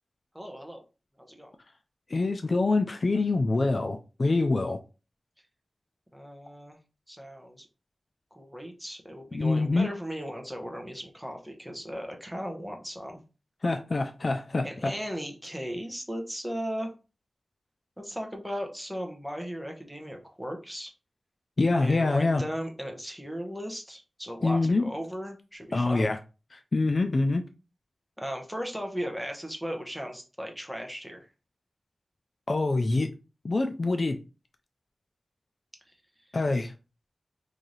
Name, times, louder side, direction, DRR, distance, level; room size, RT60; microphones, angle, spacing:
voice 1, 0.3-0.8 1.2-1.5 6.1-6.8 7.1-7.7 8.3-13.2 14.6-16.9 18.0-20.9 21.8-26.1 28.2-31.3 35.8-35.9, equal, 5° right, 0.9 m, -37 dB
voice 2, 2.1-4.8 9.3-9.9 13.6-14.9 21.6-22.4 24.4-24.9 25.7-26.2 26.5-27.4 32.5-33.1 33.4-34.2 36.3-36.7, left 3 dB, 50° left, 0.3 m, -25 dB
3.1 x 2.7 x 3.9 m
wide cardioid pair, 105°, 0 cm